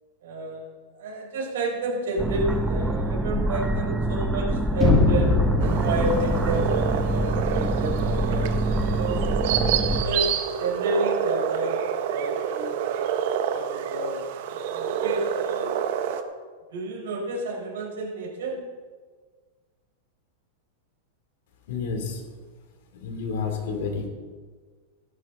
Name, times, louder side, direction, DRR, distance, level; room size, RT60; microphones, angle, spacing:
voice 1, 0.2-0.7 1.0-5.3 5.8-8.6 9.0-9.3 9.7-12.8 13.5-14.2 14.5-15.7 16.7-18.6, right 2 dB, 75° right, -2 dB, 4.0 m, -30 dB
sound 1, 2.2-10.0, right 2 dB, 5° right, 0.7 m, -25 dB
sound 2, 4.8-8.8, left 3 dB, 15° left, 1.2 m, -24 dB
sound 3, 5.6-16.2, right 9 dB, 50° right, 0.9 m, -28 dB
voice 2, 21.7-22.2 23.0-24.1, left 5 dB, 60° left, 3 dB, 2.7 m, -30 dB
15.5 x 11.5 x 3.8 m, 1.5 s
supercardioid pair, 175°, 0 cm